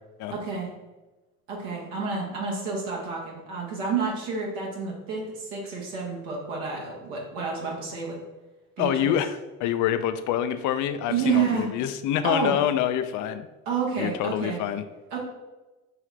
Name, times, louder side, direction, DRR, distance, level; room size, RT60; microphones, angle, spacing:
voice 1, 0.3-0.7 1.5-8.2 8.8-9.1 11.1-11.7 12.2-12.5 13.7-14.6 15.1-15.2, right 5 dB, 80° right, -2 dB, 1.0 m, -29 dB
voice 2, 8.8-13.5 14.0-14.8, left 10 dB, 55° left, 11 dB, 0.5 m, -26 dB
4.8 x 2.4 x 3.1 m, 1.1 s
hypercardioid pair, 70°, 37 cm